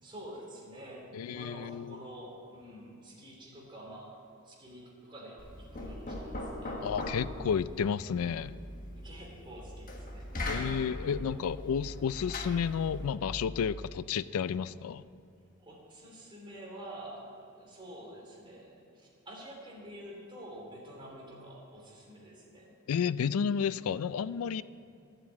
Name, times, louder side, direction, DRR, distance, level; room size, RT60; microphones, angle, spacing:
voice 1, 0.0-4.2 4.4-6.8 9.0-11.5 15.6-17.3 17.5-22.7, right 1 dB, 25° right, -3 dB, 3.0 m, -48 dB
voice 2, 1.1-2.0 6.8-8.6 10.5-15.0 22.9-24.6, left 7 dB, 90° left, 17 dB, 0.4 m, -31 dB
Knock, 5.4-13.3, left 1 dB, 40° left, 1.3 m, -40 dB
12.0 x 7.6 x 8.3 m, 2.4 s
head